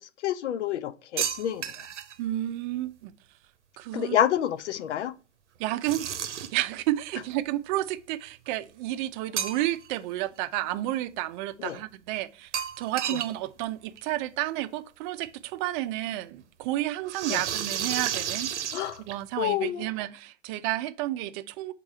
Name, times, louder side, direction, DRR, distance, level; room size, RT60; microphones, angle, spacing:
voice 1, 0.2-1.6 3.9-5.2 11.6-11.8 13.1-13.2 17.3-17.4 18.7-19.0 19.4-19.9, left 10 dB, 70° left, 0.6 m, -28 dB
sound 1, 1.2-2.2 5.8-6.7 9.4-9.9 10.3-10.4 12.5-13.3 13.6-13.7 14.0-14.1 15.3-15.4 17.1-19.4, right 9 dB, 75° right, 0.8 m, -32 dB
voice 2, 2.2-3.1 3.8-4.2 5.6-6.2 6.5-12.5 12.8-18.5 19.0-21.7, right 15 dB, 45° right, 0.5 m, -31 dB
4.6 x 3.8 x 5.4 m
figure-of-eight pair, 90°, 36 cm